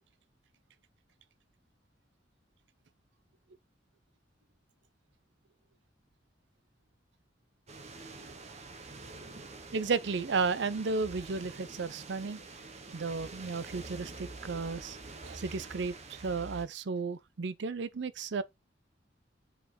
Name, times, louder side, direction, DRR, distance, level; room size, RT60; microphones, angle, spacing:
sound 1, 7.7-16.7, right 3 dB, 40° right, 1.0 m, -47 dB
voice 1, 9.7-12.4 12.9-15.0 15.2-18.4, right 4 dB, 70° right, 0.6 m, -33 dB
5.4 x 4.9 x 4.2 m
head